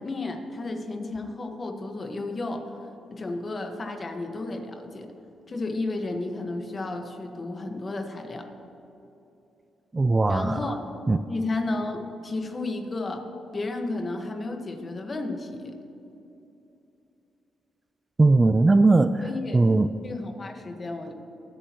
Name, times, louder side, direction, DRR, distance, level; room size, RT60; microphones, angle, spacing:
voice 1, 0.0-2.7 3.1-5.1 5.5-8.5 10.3-10.9 11.3-13.3 13.5-15.7 19.2-19.6 20.0-21.1, left 2 dB, 35° left, 4 dB, 1.5 m, -32 dB
voice 2, 9.9-10.6 11.1-11.2 18.2-19.3 19.5-19.9, right 3 dB, 25° right, 12 dB, 0.3 m, -19 dB
24.5 x 8.5 x 3.1 m, 2.8 s
cardioid pair, 80°, 0 cm